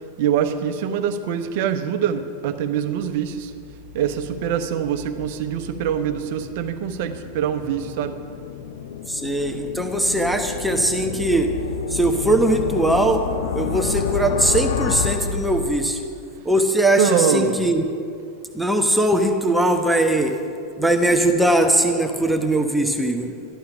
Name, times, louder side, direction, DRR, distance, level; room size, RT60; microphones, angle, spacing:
voice 1, 0.2-3.5 3.9-8.1 17.0-17.6, right 8 dB, 50° right, 8 dB, 1.0 m, -24 dB
sound 1, 3.2-16.2, left 7 dB, 60° left, 0.6 m, -30 dB
voice 2, 9.1-11.5 11.9-13.2 13.5-16.0 16.4-17.9 18.5-20.4 20.8-23.3, right 1 dB, 5° right, 4 dB, 1.0 m, -20 dB
12.5 x 11.5 x 5.8 m, 2.4 s
figure-of-eight pair, 90°, 0 cm